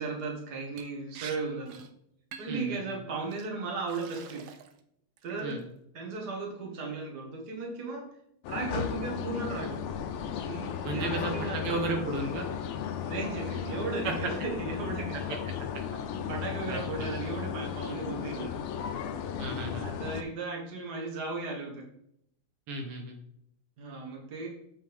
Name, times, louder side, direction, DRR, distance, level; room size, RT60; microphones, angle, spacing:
voice 1, 0.0-1.8 2.4-4.5 5.2-5.6 5.9-8.1 8.5-10.0 10.4-11.8 13.0-15.2 16.1-18.6 19.7-21.9 23.8-24.5, right 4 dB, 50° right, 0 dB, 2.0 m, -36 dB
Liquid, 0.8-1.4 1.7-1.9 2.3-2.7 3.3-3.5 3.9-4.8 5.2-5.6, right 8 dB, 75° right, 1.4 m, -46 dB
voice 2, 2.5-2.8 5.4-5.6 10.8-12.5 14.0-14.1 16.7-16.8 19.4-19.9 22.7-23.2, right 2 dB, 90° right, 2 dB, 2.2 m, -33 dB
sound 1, 8.4-20.2, left 8 dB, 85° left, 1.5 m, -35 dB
7.4 x 5.6 x 3.6 m, 0.73 s
omnidirectional pair, 2.4 m